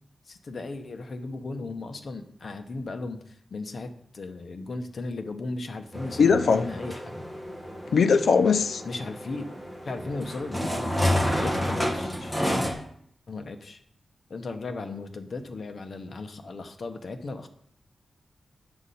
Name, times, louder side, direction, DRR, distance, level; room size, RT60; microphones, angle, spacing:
voice 1, 0.3-7.1 8.8-9.5 9.8-10.9 11.3-12.7 13.3-13.8 14.3-17.5, left 3 dB, 55° left, 6 dB, 0.9 m, -36 dB
sound 1, 5.9-12.7, equal, 10° left, 1.5 m, -30 dB
voice 2, 6.2-6.7 7.9-8.8, left 5 dB, 70° left, 10 dB, 0.5 m, -20 dB
9.6 x 6.4 x 4.2 m, 0.65 s
wide cardioid pair, 125°, 0 cm